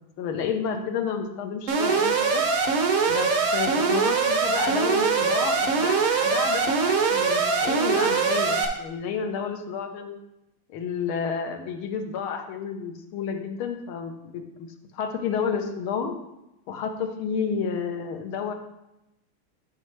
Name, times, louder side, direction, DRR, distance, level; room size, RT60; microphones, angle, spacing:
voice 1, 0.2-2.4 3.1-10.2 10.7-16.2 16.7-18.5, left 6 dB, 85° left, 5 dB, 1.7 m, -31 dB
Alarm, 1.7-8.7, right 5 dB, 90° right, 1.8 m, -22 dB
11.5 x 5.4 x 3.2 m, 0.90 s
omnidirectional pair, 2.3 m